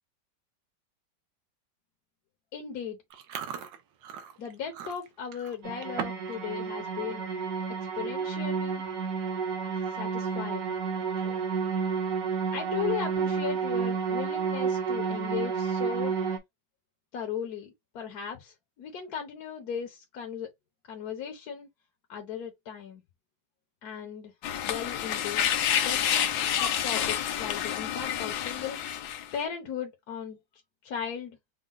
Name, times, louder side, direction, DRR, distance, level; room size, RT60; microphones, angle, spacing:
voice 1, 2.5-3.0 4.4-7.2 7.8-8.8 10.0-10.7 12.5-16.1 17.1-20.5 20.9-21.7 22.1-23.0 23.8-24.3 24.7-26.2 26.5-29.0 29.3-30.4 30.8-31.4, left 8 dB, 60° left, 1.2 m, -37 dB
Chewing mastication, 3.1-6.4 6.7-7.0 7.4-7.6 8.4-8.5 8.7-9.1 9.5-9.6 11.0-11.6, right 8 dB, 75° right, 1.4 m, -40 dB
sound 1, 5.6-16.4, right 6 dB, 50° right, 1.3 m, -30 dB
sound 2, 24.4-29.4, left 10 dB, 85° left, 1.5 m, -29 dB
5.2 x 2.2 x 3.7 m
omnidirectional pair, 2.1 m